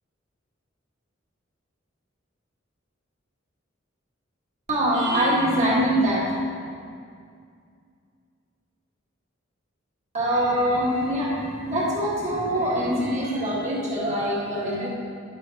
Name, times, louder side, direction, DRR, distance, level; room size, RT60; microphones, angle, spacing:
voice 1, 4.7-6.3 10.1-14.9, equal, 35° right, -5 dB, 1.9 m, -23 dB
10.0 x 9.6 x 3.0 m, 2.3 s
head